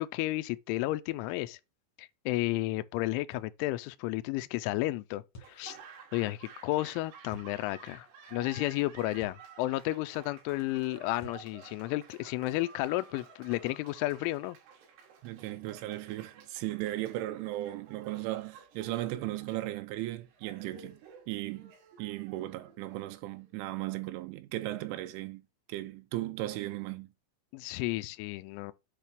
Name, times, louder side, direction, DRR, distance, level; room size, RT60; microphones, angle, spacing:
voice 1, 0.0-1.6 2.0-5.2 5.5-5.8 6.1-14.6 27.5-28.7, left 18 dB, 85° left, 2.8 m, -32 dB
sound 1, 3.3-3.5 5.3-5.6 7.3-7.5 9.2-9.5 11.2-11.5, equal, 65° left, 1.5 m, -49 dB
Laughter / Applause, 5.4-23.5, right 6 dB, 65° right, 3.4 m, -53 dB
voice 2, 15.2-21.0 21.3-21.7 22.0-25.4 25.7-27.1, right 16 dB, 80° right, 2.9 m, -36 dB
8.3 x 3.3 x 5.9 m
omnidirectional pair, 5.9 m